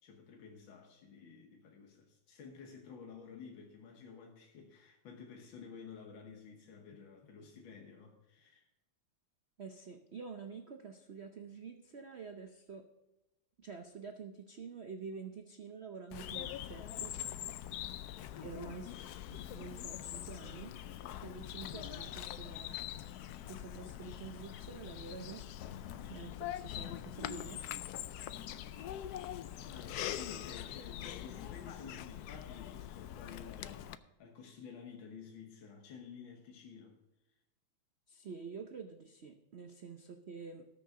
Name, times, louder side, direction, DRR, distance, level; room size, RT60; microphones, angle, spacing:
voice 1, 0.0-8.7 18.3-18.6 29.7-37.0, left 6 dB, 70° left, 1 dB, 1.9 m, -52 dB
voice 2, 9.6-12.9 13.6-17.1 18.4-19.0 19.3-20.7 21.2-22.8 23.5-25.4 26.1-27.6 38.1-40.7, right 5 dB, 75° right, 5 dB, 0.5 m, -48 dB
Bird vocalization bird call bird song, 16.1-34.0, left 11 dB, 85° left, 0.8 m, -43 dB
18.5 x 6.7 x 3.8 m, 0.98 s
omnidirectional pair, 2.3 m